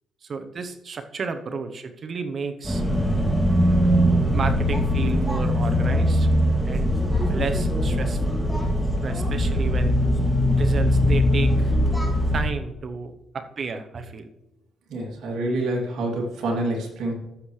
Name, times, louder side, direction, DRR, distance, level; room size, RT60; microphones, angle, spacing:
voice 1, 0.2-2.8 4.3-6.3 6.6-6.9 7.3-8.2 9.0-10.0 10.5-11.7 12.3-14.3, right 5 dB, 50° right, 8 dB, 0.8 m, -32 dB
sound 1, 2.6-12.4, equal, 5° right, 2.5 m, -21 dB
voice 2, 14.9-17.1, right 1 dB, 75° right, -1 dB, 2.7 m, -27 dB
14.5 x 7.2 x 3.2 m, 0.98 s
cardioid pair, 90°, 0 cm